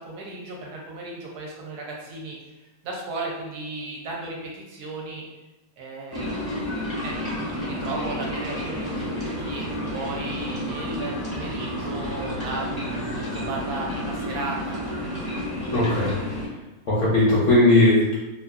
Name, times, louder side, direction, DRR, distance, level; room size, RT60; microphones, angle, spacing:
voice 1, 0.0-2.4 2.8-5.2 5.8-6.3 7.0-8.9 9.2-14.8, right 2 dB, 75° right, -2 dB, 1.1 m, -35 dB
sound 1, 6.1-16.5, equal, 15° right, 0.5 m, -30 dB
voice 2, 15.7-16.1 16.9-18.1, left 1 dB, 60° left, -7 dB, 0.8 m, -18 dB
2.8 x 2.3 x 2.4 m, 1.1 s
omnidirectional pair, 1.8 m